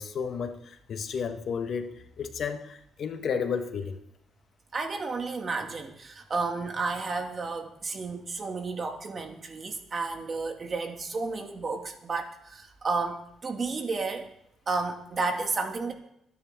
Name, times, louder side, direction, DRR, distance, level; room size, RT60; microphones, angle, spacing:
voice 1, 0.0-1.9 2.2-4.0, left 6 dB, 60° left, 6 dB, 1.5 m, -32 dB
voice 2, 4.7-14.3 14.7-15.9, right 3 dB, 40° right, 3 dB, 2.5 m, -32 dB
23.5 x 10.0 x 3.8 m, 0.76 s
cardioid pair, 90°, 0 cm